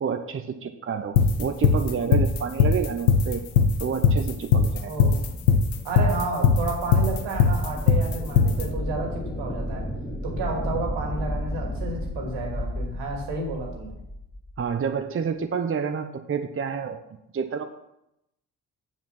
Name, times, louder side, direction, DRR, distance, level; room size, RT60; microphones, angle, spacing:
voice 1, 0.0-3.4 3.8-4.9 14.6-17.0 17.3-17.6, right 6 dB, 30° right, 7 dB, 0.8 m, -29 dB
sound 1, 1.1-8.6, left 6 dB, 85° left, 0.8 m, -19 dB
sound 2, 4.9-14.7, equal, 10° left, 2.0 m, -34 dB
voice 2, 4.9-5.2 5.8-9.9 10.2-13.9, right 3 dB, 75° right, 0 dB, 2.6 m, -31 dB
7.5 x 7.1 x 5.9 m, 0.84 s
hypercardioid pair, 45°, 42 cm